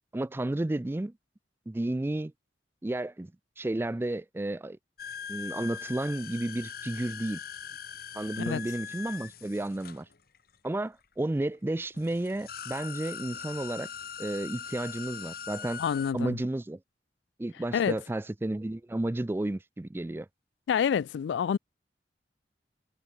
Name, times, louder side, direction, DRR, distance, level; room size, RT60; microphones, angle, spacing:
voice 1, 0.1-1.1 1.7-2.3 2.8-3.3 3.6-4.8 5.3-7.4 8.1-10.1 10.6-13.9 14.2-15.8 16.1-16.8 17.4-20.3, right 1 dB, 15° right, 0.3 m, -32 dB
Tap water vibration, 5.0-10.7 11.5-11.6 11.9-16.1, left 7 dB, 60° left, 1.5 m, -41 dB
voice 2, 15.8-16.4 17.7-18.0 20.7-21.6, left 7 dB, 85° left, 0.3 m, -27 dB
head